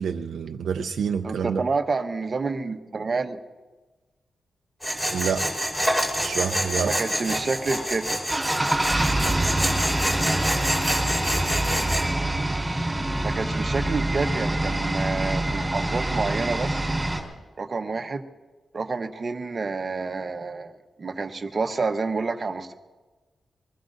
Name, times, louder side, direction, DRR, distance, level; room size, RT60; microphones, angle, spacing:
voice 1, 0.0-1.6 5.1-5.4 6.2-6.9, right 7 dB, 90° right, 4 dB, 0.5 m, -27 dB
voice 2, 1.2-3.4 6.8-8.2 13.2-16.9 17.6-18.2 18.7-22.7, right 4 dB, 40° right, 6 dB, 1.0 m, -28 dB
Tools, 4.8-12.0, equal, 15° left, 4.8 m, -27 dB
sound 1, 8.3-17.2, right 1 dB, 10° right, 3.2 m, -25 dB
24.0 x 19.5 x 2.6 m, 1.2 s
wide cardioid pair, 135°, 0 cm